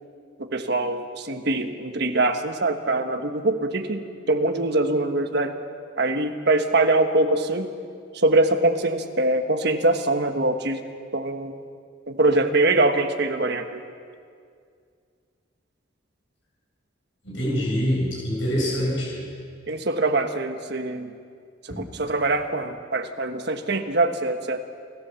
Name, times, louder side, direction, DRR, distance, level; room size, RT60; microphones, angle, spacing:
voice 1, 0.4-5.6 6.0-7.7 8.1-10.8 11.1-11.6 12.1-13.8 19.7-21.1 21.6-24.6, right 2 dB, 55° right, 6 dB, 1.4 m, -23 dB
voice 2, 17.2-19.2 21.7-21.8, equal, 70° left, -3 dB, 8.0 m, -25 dB
28.5 x 14.5 x 7.1 m, 2.2 s
head